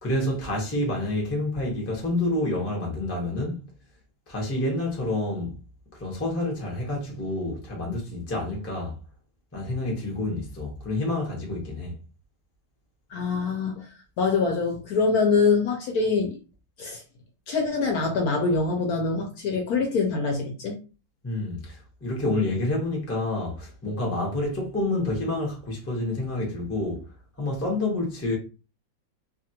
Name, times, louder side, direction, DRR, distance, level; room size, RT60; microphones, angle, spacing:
voice 1, 0.0-3.6 4.3-5.5 6.0-9.0 9.5-12.0 21.2-27.0 27.4-28.4, left 2 dB, 20° left, 0.3 m, -28 dB
voice 2, 13.1-13.9 14.2-16.4 16.8-17.0 17.5-20.8, left 4 dB, 70° left, 1.0 m, -24 dB
2.8 x 2.4 x 2.7 m
omnidirectional pair, 2.0 m